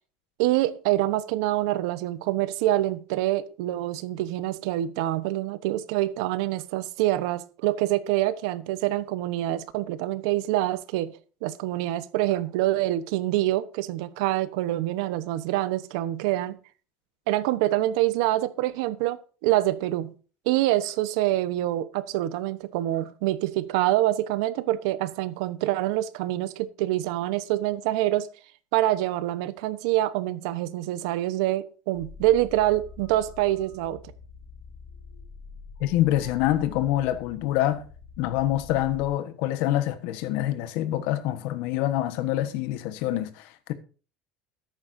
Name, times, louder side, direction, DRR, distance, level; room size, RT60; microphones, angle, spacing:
voice 1, 0.4-16.6 17.3-20.1 20.5-28.3 28.7-34.0, right 15 dB, 75° right, 1.0 m, -26 dB
sound 1, 31.9-39.1, left 4 dB, 40° left, 6.5 m, -45 dB
voice 2, 35.8-37.8 38.2-43.7, left 13 dB, 60° left, 1.3 m, -26 dB
13.5 x 11.0 x 2.7 m
cardioid pair, 180°, 3 cm